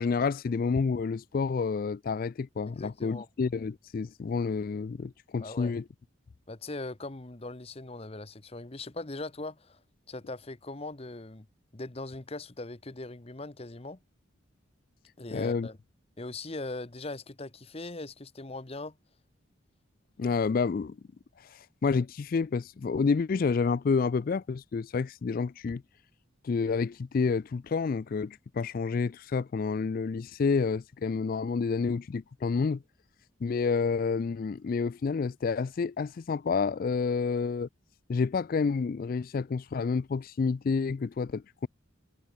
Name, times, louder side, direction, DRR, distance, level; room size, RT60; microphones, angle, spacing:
voice 1, 0.0-5.8 15.3-15.7 20.2-21.0 21.8-25.8 26.4-32.8 33.4-37.7 38.1-41.7, left 5 dB, 45° left, 0.3 m, -29 dB
voice 2, 2.7-3.3 5.4-5.7 6.5-9.8 10.1-11.5 11.7-14.0 15.2-15.8 16.2-19.0, left 2 dB, 30° left, 1.0 m, -40 dB
head